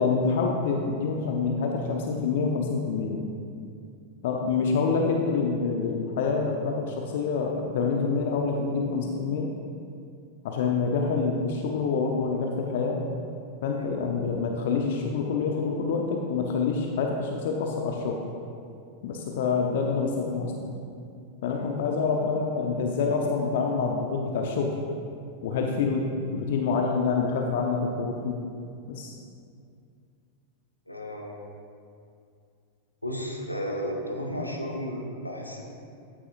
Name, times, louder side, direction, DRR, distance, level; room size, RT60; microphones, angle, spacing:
voice 1, 0.0-3.2 4.2-9.5 10.4-13.0 13.6-18.2 19.0-20.7 21.4-24.8 25.4-28.3 28.9-29.1, left 4 dB, 55° left, 1 dB, 0.9 m, -27 dB
voice 2, 30.9-31.4 33.0-35.6, equal, 85° left, 0 dB, 1.3 m, -33 dB
14.0 x 9.8 x 2.6 m, 2.4 s
figure-of-eight pair, 90°, 0 cm